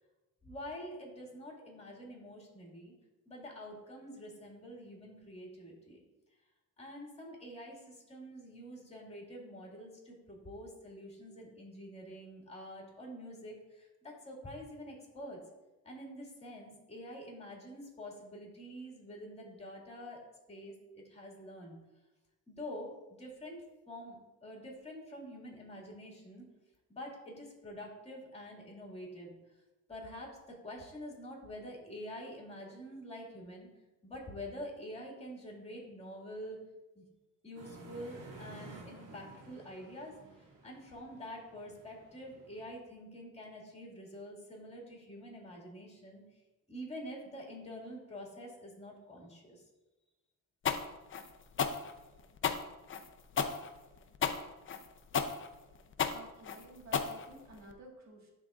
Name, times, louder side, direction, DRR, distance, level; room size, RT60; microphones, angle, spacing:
voice 1, 0.4-2.9 3.3-6.0 6.8-15.4 15.8-20.2 20.5-21.8 22.5-22.9 23.2-24.2 24.4-26.4 26.9-29.4 29.9-30.3 30.6-33.7 34.0-36.6 37.0-37.1 37.4-40.1 40.6-46.2 46.7-49.6, equal, 20° left, -2 dB, 1.9 m, -47 dB
sound 1, 37.5-42.7, right 2 dB, 70° right, 2.0 m, -53 dB
sound 2, 50.7-57.7, left 7 dB, 40° left, 0.5 m, -33 dB
voice 2, 56.1-58.3, right 2 dB, 55° right, -1 dB, 1.6 m, -52 dB
11.0 x 3.8 x 2.4 m, 1.1 s
cardioid pair, 105°, 32 cm